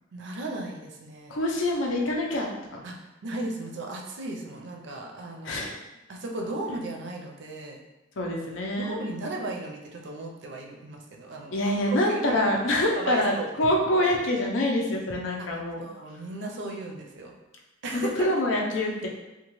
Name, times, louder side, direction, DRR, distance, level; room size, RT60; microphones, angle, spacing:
voice 1, 0.1-1.3 2.8-5.7 6.1-7.8 8.8-12.4 12.9-13.8 15.4-15.5 15.8-17.3 17.8-18.3, right 2 dB, 65° right, 1 dB, 0.5 m, -36 dB
voice 2, 1.3-2.8 5.4-5.8 8.2-9.0 11.5-13.3 13.6-15.9 17.9-19.1, left 1 dB, 80° left, 0 dB, 0.5 m, -26 dB
2.8 x 2.3 x 3.0 m, 1.0 s
head